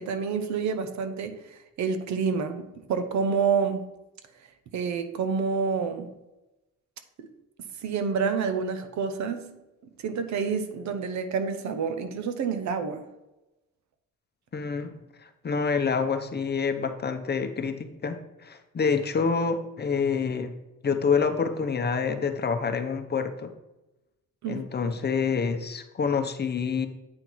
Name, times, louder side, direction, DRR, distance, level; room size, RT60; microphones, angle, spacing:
voice 1, 0.0-3.8 4.7-6.1 7.2-7.3 7.8-9.5 10.0-13.0 24.4-24.6, right 5 dB, 65° right, 9 dB, 0.9 m, -28 dB
voice 2, 14.5-14.9 15.2-20.5 20.8-23.5 24.5-26.9, left 5 dB, 35° left, 7 dB, 0.8 m, -27 dB
8.7 x 3.9 x 4.6 m, 1.0 s
cardioid pair, 90°, 30 cm